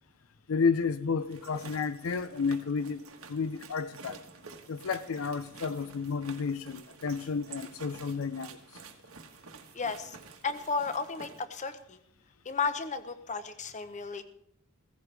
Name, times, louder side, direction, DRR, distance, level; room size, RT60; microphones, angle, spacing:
voice 1, 0.5-3.0 3.3-4.2 4.7-8.6, left 5 dB, 75° left, 0.5 m, -31 dB
sound 1, 1.2-11.4, right 5 dB, 85° right, 1.4 m, -50 dB
voice 2, 9.7-10.2 10.4-12.0 12.4-14.2, left 4 dB, 35° left, 0.9 m, -33 dB
15.5 x 15.5 x 3.4 m
head